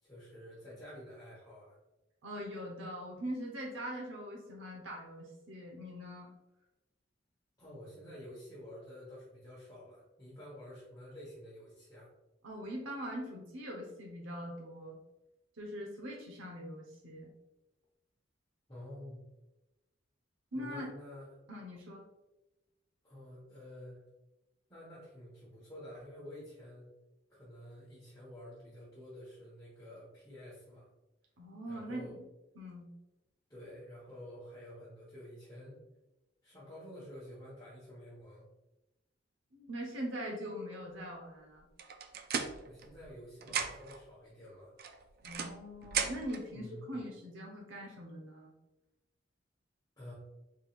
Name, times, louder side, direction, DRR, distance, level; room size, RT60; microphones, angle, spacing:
voice 1, 0.0-1.8 7.6-12.1 18.7-19.2 20.5-21.3 23.0-24.0 24.7-26.9 27.3-30.9 31.7-32.1 33.5-35.8 36.4-38.4 42.6-44.7 46.5-46.9 50.0-50.1, left 1 dB, 20° left, -9 dB, 1.1 m, -50 dB
voice 2, 2.2-6.3 12.4-15.0 15.6-17.3 20.5-20.9 21.5-22.0 31.4-32.2 32.5-32.9 39.5-41.7 45.2-48.5, equal, 85° right, -1 dB, 0.9 m, -42 dB
sound 1, 41.8-43.2 43.4-44.0 44.8-46.4, right 7 dB, 50° right, 0.4 m, -37 dB
4.4 x 3.6 x 2.4 m, 0.99 s
head